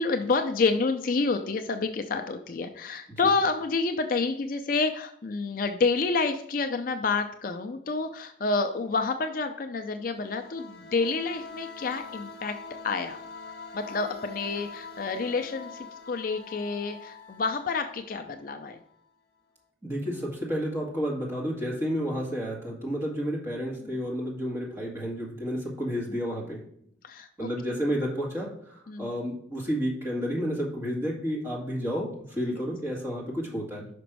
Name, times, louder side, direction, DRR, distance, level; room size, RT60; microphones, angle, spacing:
voice 1, 0.0-12.5 12.8-13.2 13.7-18.8 23.8-24.0 27.0-27.8 28.9-29.1 32.5-32.6, left 4 dB, 45° left, 7 dB, 0.4 m, -29 dB
sound 1, 10.0-18.6, left 4 dB, 65° left, 0.8 m, -44 dB
voice 2, 19.8-26.6 27.4-33.9, equal, 15° right, -4 dB, 1.9 m, -31 dB
5.9 x 5.2 x 4.6 m, 0.68 s
head